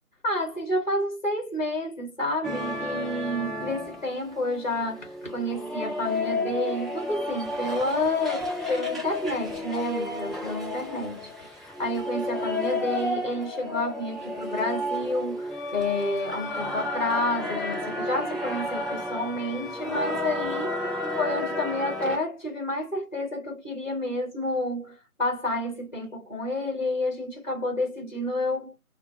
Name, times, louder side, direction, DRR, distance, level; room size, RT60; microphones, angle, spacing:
voice 1, 0.2-20.8 21.2-28.7, left 1 dB, 30° left, 1.0 m, -30 dB
sound 1, 2.4-22.2, left 1 dB, ahead, 0.4 m, -32 dB
4.7 x 2.2 x 2.3 m
figure-of-eight pair, 160°, 46 cm